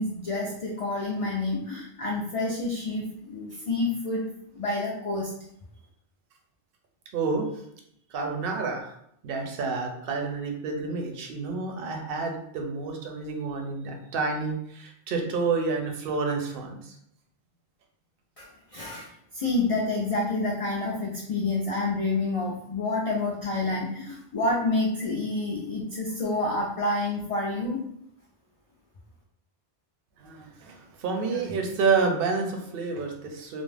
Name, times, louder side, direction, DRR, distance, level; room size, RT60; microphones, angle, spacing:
voice 1, 0.0-4.2 4.5-5.3 18.4-27.8, left 2 dB, 60° left, -3 dB, 0.3 m, -28 dB
voice 2, 7.1-7.6 8.1-8.9 9.2-17.0 30.2-33.6, right 4 dB, 65° right, 2 dB, 0.7 m, -29 dB
2.4 x 2.1 x 3.2 m, 0.73 s
omnidirectional pair, 1.1 m